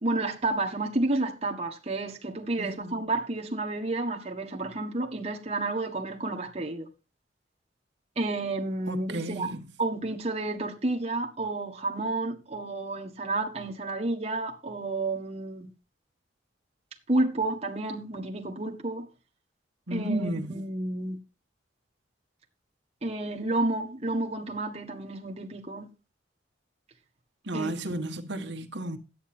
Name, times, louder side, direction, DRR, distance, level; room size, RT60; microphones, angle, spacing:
voice 1, 0.0-6.9 8.1-9.5 9.8-15.7 17.1-19.1 19.9-21.2 23.0-25.9 27.5-27.7, right 2 dB, 35° right, 1.6 m, -30 dB
voice 2, 2.6-3.0 8.9-9.7 19.9-20.6 27.5-29.0, right 1 dB, 70° right, 1.6 m, -33 dB
12.0 x 9.2 x 4.4 m
head